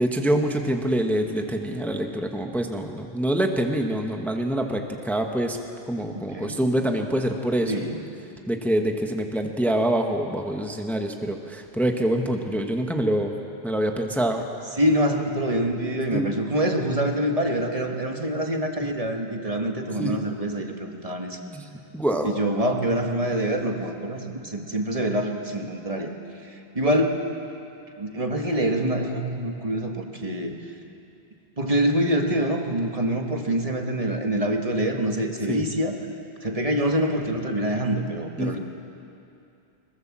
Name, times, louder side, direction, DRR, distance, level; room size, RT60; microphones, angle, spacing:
voice 1, 0.0-5.6 5.9-7.7 8.5-13.3 13.6-14.4 16.1-16.3 20.0-20.1 21.4-21.7 21.9-22.3 35.5-35.6 38.4-38.6, right 1 dB, ahead, 3 dB, 1.2 m, -25 dB
voice 2, 6.1-6.6 7.7-8.0 14.8-21.4 22.2-26.1 26.4-27.2 28.0-30.5 31.6-36.0 36.4-38.6, right 1 dB, 35° right, 3 dB, 1.7 m, -25 dB
21.0 x 21.0 x 7.4 m, 2.7 s
omnidirectional pair, 1.1 m